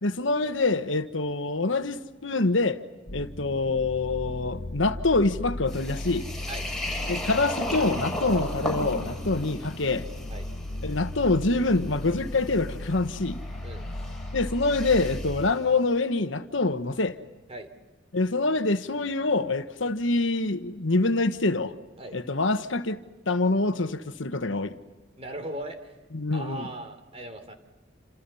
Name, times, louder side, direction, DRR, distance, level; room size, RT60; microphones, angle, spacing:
voice 1, 0.0-2.8 3.1-6.3 7.1-10.1 10.8-13.4 14.3-17.2 18.1-21.7 22.1-23.0 23.3-24.7 26.1-26.7, left 3 dB, 75° left, 1.4 m, -25 dB
sound 1, 3.1-15.5, left 1 dB, 55° left, 1.3 m, -36 dB
sound 2, 5.7-15.5, left 1 dB, ahead, 7.3 m, -37 dB
voice 2, 25.2-26.0 26.3-27.5, right 1 dB, 35° right, 3.3 m, -38 dB
29.0 x 27.5 x 5.7 m
head